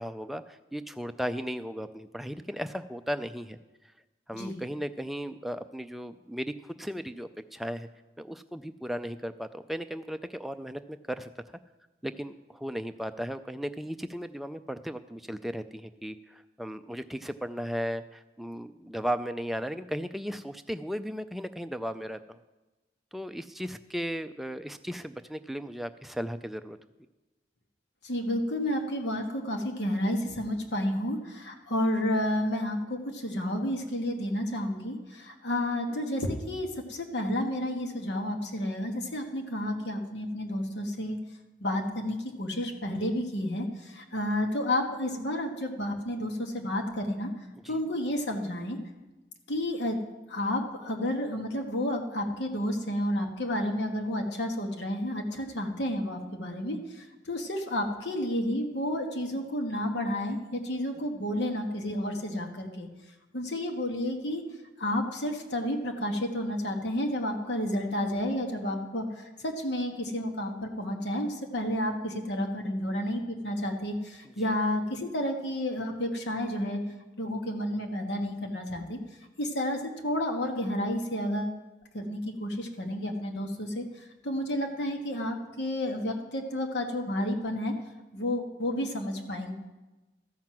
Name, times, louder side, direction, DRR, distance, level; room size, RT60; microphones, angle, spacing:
voice 1, 0.0-3.6 4.3-7.9 8.2-11.3 12.0-22.4 23.1-26.8 47.6-47.8 74.4-74.5, equal, ahead, 8 dB, 0.3 m, -36 dB
voice 2, 4.3-4.6 28.0-41.2 41.6-47.3 47.7-48.8 49.5-50.0 50.3-62.9 63.3-64.4 64.8-76.8 77.2-79.0 79.4-81.6 81.9-87.7 88.1-89.5, left 1 dB, 75° left, 3 dB, 1.4 m, -31 dB
13.5 x 5.9 x 7.6 m, 1.1 s
head